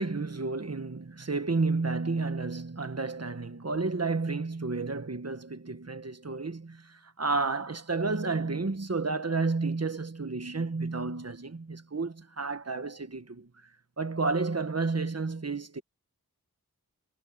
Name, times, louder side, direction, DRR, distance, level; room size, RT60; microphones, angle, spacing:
voice 1, 0.0-13.5 14.0-15.8, right 3 dB, 45° right, 1.6 m, -31 dB
wide cardioid pair, 45°, 36 cm